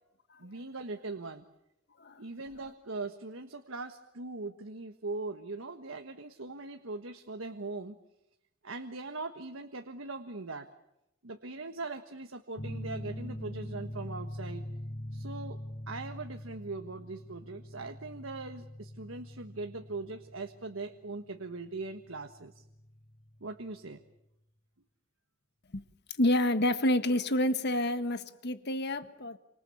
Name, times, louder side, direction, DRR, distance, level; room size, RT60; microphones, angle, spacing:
voice 1, 0.4-1.4 2.2-7.9 8.6-10.7 11.2-14.6 15.1-22.6 23.4-24.0, right 3 dB, 75° right, 1.5 m, -40 dB
sound 1, 12.6-23.8, equal, 35° left, 1.2 m, -43 dB
voice 2, 26.2-29.4, left 1 dB, 55° left, 1.6 m, -28 dB
29.5 x 26.0 x 7.1 m
head